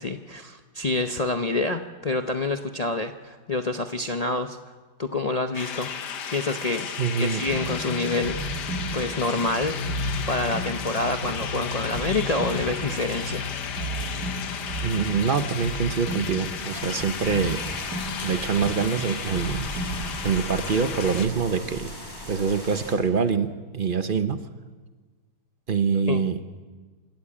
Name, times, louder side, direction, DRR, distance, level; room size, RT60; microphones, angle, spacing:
voice 1, 0.0-4.6 5.0-5.9 6.3-6.9 7.2-9.8 10.3-13.5 13.9-14.1 26.1-26.2, left 2 dB, 50° left, 6 dB, 0.4 m, -27 dB
sound 1, 5.5-21.3, left 7 dB, 70° left, 1.7 m, -34 dB
voice 2, 7.0-7.4 14.8-17.6 18.2-19.6 20.2-21.9 22.3-24.4 25.7-26.4, right 6 dB, 45° right, 10 dB, 0.7 m, -25 dB
sound 2, 7.5-21.2, equal, 60° right, 2.9 m, -34 dB
sound 3, 16.6-22.9, equal, 25° left, 5.0 m, -39 dB
26.5 x 13.5 x 8.6 m, 1.4 s
omnidirectional pair, 1.9 m